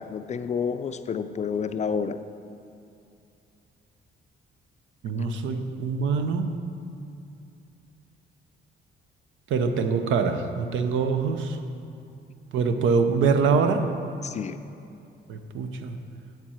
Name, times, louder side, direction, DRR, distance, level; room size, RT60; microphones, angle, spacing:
voice 1, 0.0-2.2 14.2-14.6, left 6 dB, 35° left, 10 dB, 0.4 m, -29 dB
voice 2, 5.0-6.5 9.5-11.6 12.5-13.8 15.3-16.0, right 5 dB, 80° right, 7 dB, 0.7 m, -24 dB
7.5 x 7.5 x 4.3 m, 2.6 s
cardioid pair, 90°, 20 cm